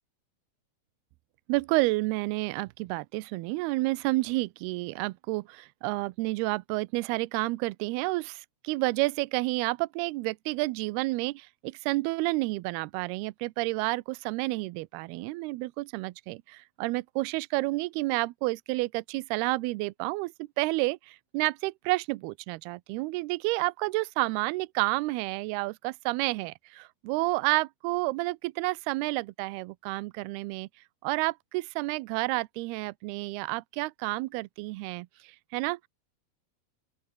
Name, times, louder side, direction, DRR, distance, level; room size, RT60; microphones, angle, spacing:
voice 1, 1.5-30.7 31.0-35.9, right 22 dB, 80° right, 2.6 m, -30 dB
open air
omnidirectional pair, 4.6 m